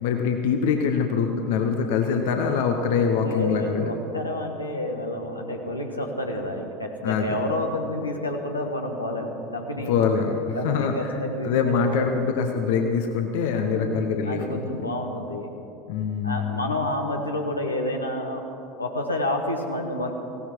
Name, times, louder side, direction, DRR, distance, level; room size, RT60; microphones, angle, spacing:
voice 1, 0.0-3.9 7.0-7.4 9.9-11.2 11.4-14.8 15.9-16.8, left 6 dB, 60° left, 4 dB, 1.1 m, -24 dB
voice 2, 3.2-9.9 10.5-12.2 13.7-15.5 16.2-18.4 18.8-20.1, left 1 dB, 85° left, 3 dB, 1.4 m, -29 dB
18.0 x 17.0 x 4.7 m, 2.9 s
figure-of-eight pair, 75°, 0 cm